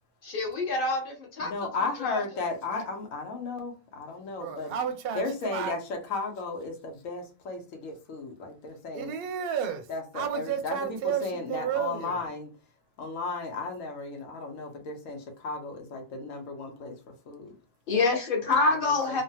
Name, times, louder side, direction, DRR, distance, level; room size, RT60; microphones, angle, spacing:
voice 1, 0.2-1.5 2.0-2.2 17.9-19.2, left 3 dB, 45° left, 1.0 m, -26 dB
voice 2, 1.4-4.7 5.1-9.1 9.9-12.5 13.0-17.5 18.8-19.2, left 3 dB, 85° left, 1.1 m, -35 dB
voice 3, 4.3-5.7 8.9-9.9 10.1-12.2, right 8 dB, 60° right, 0.7 m, -32 dB
3.1 x 2.1 x 2.7 m
omnidirectional pair, 1.3 m